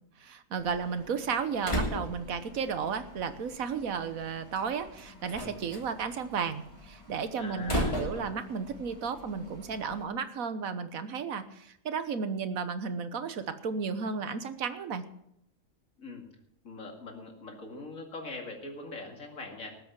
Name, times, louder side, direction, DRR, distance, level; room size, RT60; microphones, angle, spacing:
voice 1, 0.2-15.0, right 6 dB, 85° right, 10 dB, 1.5 m, -33 dB
Slam, 0.6-10.0, equal, 20° left, 2.8 m, -38 dB
voice 2, 7.4-8.1 16.0-16.2 16.6-19.7, left 3 dB, 75° left, 2 dB, 2.7 m, -42 dB
19.0 x 7.8 x 5.9 m, 0.77 s
omnidirectional pair, 1.4 m